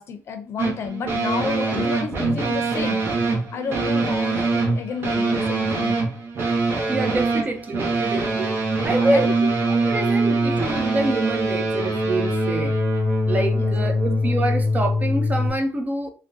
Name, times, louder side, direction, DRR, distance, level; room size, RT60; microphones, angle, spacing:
voice 1, 0.0-3.0 3.5-6.0 8.8-9.6 13.5-14.1, left 5 dB, 50° left, 0.6 m, -31 dB
sound 1, 0.6-15.5, right 2 dB, 45° right, 0.9 m, -23 dB
voice 2, 6.9-8.5 8.8-9.3 9.7-12.8 13.3-16.1, right 2 dB, 30° right, 0.6 m, -26 dB
3.5 x 2.2 x 2.6 m
cardioid pair, 105°, 5 cm